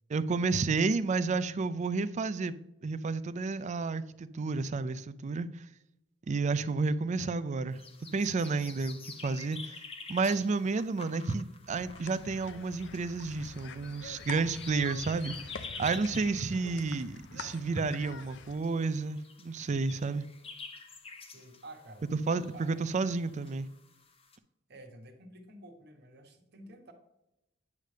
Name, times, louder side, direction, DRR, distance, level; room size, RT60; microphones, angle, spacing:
voice 1, 0.1-2.5 2.8-5.7 6.3-7.8 8.1-9.0 9.2-9.8 10.1-15.4 15.8-20.3 22.3-23.7, right 4 dB, 35° right, 0.4 m, -31 dB
sound 1, 7.7-24.4, left 4 dB, 30° left, 0.7 m, -49 dB
voice 2, 8.8-9.3 21.3-22.9 24.7-26.9, right 1 dB, 55° right, 1.3 m, -51 dB
sound 2, 11.7-18.6, left 5 dB, 65° left, 0.5 m, -46 dB
9.6 x 3.3 x 6.5 m
head